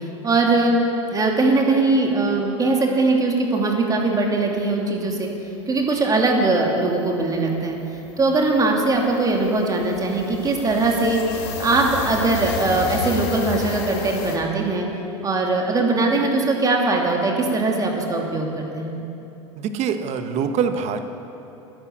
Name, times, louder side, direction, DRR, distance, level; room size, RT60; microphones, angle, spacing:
voice 1, 0.2-0.8 1.1-5.3 5.7-7.8 8.2-11.2 11.6-14.9 15.2-19.0, right 3 dB, 25° right, 0 dB, 2.6 m, -20 dB
sound 1, 6.0-6.1 6.3-6.5 6.8-14.4, left 5 dB, 70° left, 2.1 m, -32 dB
voice 2, 19.6-21.0, right 7 dB, 45° right, 8 dB, 1.3 m, -24 dB
13.0 x 10.5 x 8.4 m, 2.9 s
hypercardioid pair, 95°, 15 cm